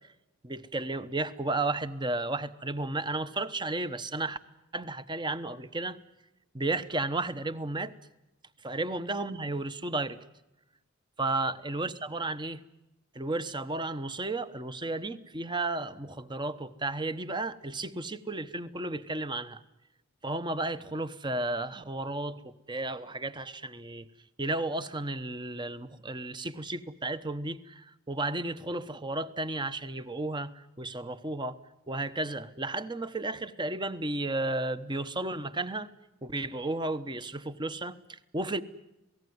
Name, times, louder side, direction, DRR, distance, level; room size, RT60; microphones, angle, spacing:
voice 1, 0.4-4.4 4.7-6.0 6.5-7.9 8.6-10.2 11.2-12.6 13.1-19.6 20.2-24.1 24.4-31.6 31.9-35.9 36.2-38.6, right 2 dB, 20° right, 1.0 m, -33 dB
27.0 x 18.5 x 9.5 m
head